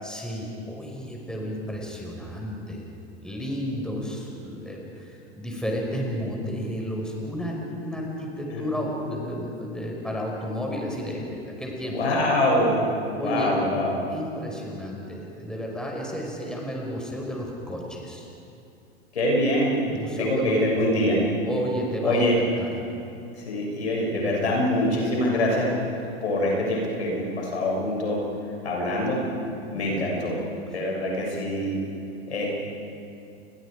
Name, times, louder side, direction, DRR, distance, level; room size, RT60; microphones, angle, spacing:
voice 1, 0.0-2.9 3.2-12.2 13.2-13.6 14.1-18.3 19.9-20.9 21.4-22.7 24.2-24.4 29.7-30.1 30.7-30.8, equal, ahead, -2 dB, 5.5 m, -32 dB
voice 2, 11.9-12.8 13.2-14.0 19.1-19.8 20.2-21.2 22.0-22.4 23.3-25.7 26.2-28.2 28.6-29.2 29.7-30.3 30.7-31.7 32.3-32.5, left 1 dB, 85° left, -2 dB, 7.1 m, -24 dB
29.5 x 22.0 x 5.0 m, 2.7 s
hypercardioid pair, 100°, 32 cm